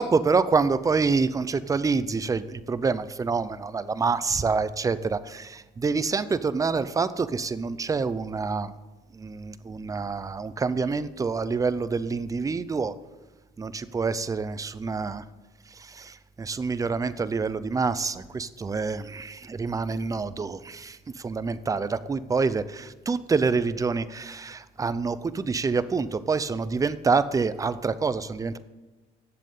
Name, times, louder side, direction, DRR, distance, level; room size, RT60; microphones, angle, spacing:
voice 1, 0.0-8.7 9.1-12.9 13.6-15.2 15.7-28.6, right 4 dB, 20° right, 14 dB, 0.5 m, -27 dB
7.7 x 7.3 x 8.4 m, 1.2 s
cardioid pair, 110°, 17 cm